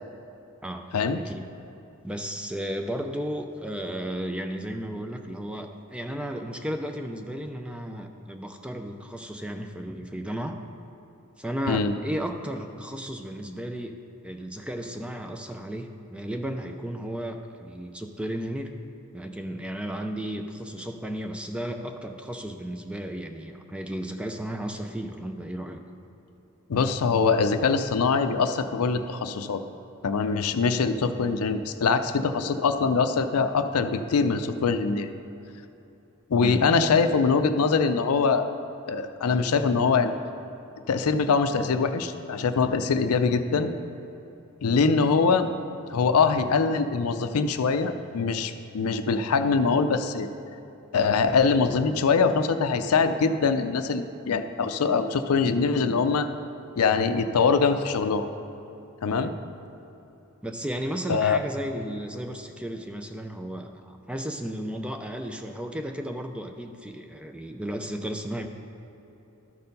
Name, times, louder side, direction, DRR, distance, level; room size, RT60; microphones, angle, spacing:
voice 1, 2.0-10.6 11.4-14.0 14.2-18.7 19.1-25.8 36.4-36.7 59.2-59.3 60.4-68.5, equal, 5° right, 5 dB, 0.4 m, -34 dB
voice 2, 26.7-29.6 30.0-35.1 36.3-38.5 38.9-40.2 40.9-43.7 44.6-45.5 45.9-50.3 50.9-56.3 56.8-58.3 59.0-59.3 61.1-61.4, left 5 dB, 80° left, 9 dB, 0.5 m, -23 dB
13.0 x 4.4 x 5.3 m, 2.9 s
head